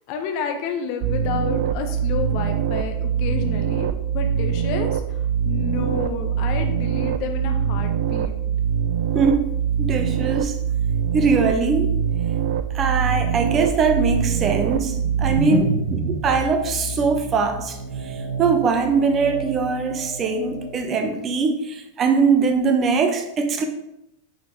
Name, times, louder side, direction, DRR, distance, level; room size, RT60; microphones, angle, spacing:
voice 1, 0.1-3.9 4.1-8.4 13.2-13.5 15.5-15.7 19.9-20.2, left 5 dB, 45° left, 5 dB, 1.2 m, -29 dB
sound 1, 1.0-15.4, right 8 dB, 50° right, 0.5 m, -23 dB
voice 2, 9.1-9.4 9.8-10.6 11.1-12.0 12.7-15.6 16.1-17.8 18.0-23.6, right 5 dB, 25° right, 6 dB, 1.1 m, -21 dB
sound 2, 14.7-21.0, right 3 dB, 85° right, 2.8 m, -30 dB
9.1 x 6.2 x 3.7 m, 0.83 s
figure-of-eight pair, 90°, 0 cm